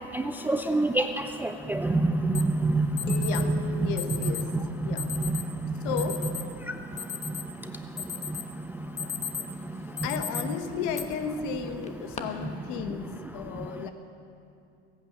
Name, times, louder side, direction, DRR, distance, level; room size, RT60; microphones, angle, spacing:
voice 1, 0.1-1.1 1.4-3.6 5.1-5.2, right 2 dB, 5° right, 7 dB, 0.4 m, -26 dB
Alarm, 2.3-2.4 3.0-3.4 4.0-4.5 5.0-5.4 6.0-6.4 6.8-7.6 8.0-8.5 8.8-9.5 10.0-10.4 10.9-11.0 11.8-12.2, left 8 dB, 20° left, 1.1 m, -35 dB
sound 1, 3.1-5.5, left 3 dB, 85° left, 1.8 m, -43 dB
voice 2, 3.2-4.5 4.8-5.1 5.8-6.3 10.0-13.9, left 7 dB, 55° left, 8 dB, 1.4 m, -34 dB
21.5 x 8.7 x 6.1 m, 2.6 s
hypercardioid pair, 100°, 36 cm